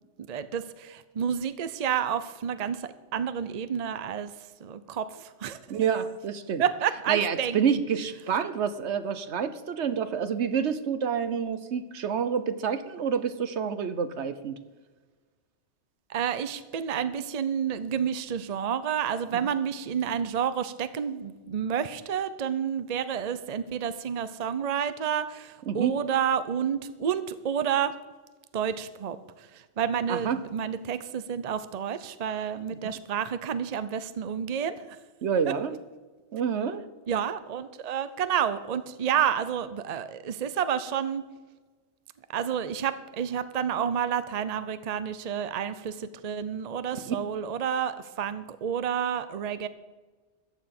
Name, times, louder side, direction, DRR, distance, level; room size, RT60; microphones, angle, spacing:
voice 1, 0.3-5.9 6.6-7.8 16.1-27.9 28.5-35.0 35.5-35.6 37.1-41.2 42.3-49.7, right 8 dB, 40° right, 13 dB, 0.7 m, -30 dB
voice 2, 5.7-6.6 7.1-14.6 25.7-25.9 30.1-30.4 35.2-35.7 36.3-36.8 47.1-47.2, right 7 dB, 70° right, 12 dB, 1.1 m, -28 dB
14.5 x 9.1 x 6.0 m, 1.3 s
omnidirectional pair, 1.2 m